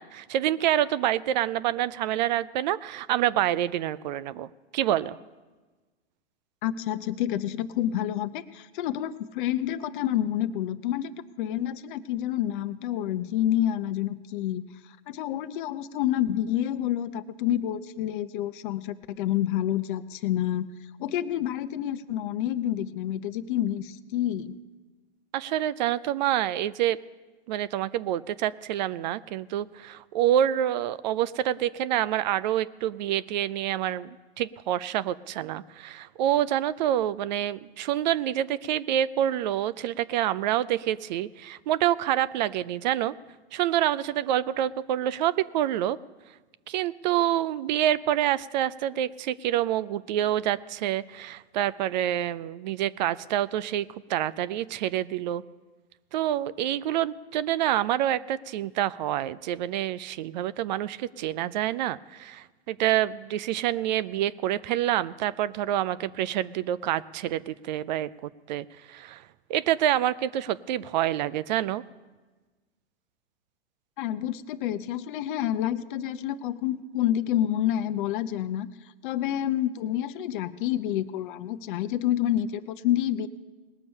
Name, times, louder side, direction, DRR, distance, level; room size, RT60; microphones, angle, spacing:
voice 1, 0.0-5.2 25.3-27.0 27.5-34.1 34.4-43.1 43.5-46.0 46.7-55.4 56.1-68.1 68.5-69.2 69.5-71.8, right 12 dB, 45° right, 17 dB, 0.4 m, -27 dB
voice 2, 6.6-11.1 11.4-14.6 15.1-20.7 21.0-24.5 74.0-78.7 79.0-83.3, left 12 dB, 50° left, 12 dB, 0.7 m, -28 dB
20.0 x 6.9 x 5.4 m, 1.3 s
hypercardioid pair, 110°, 32 cm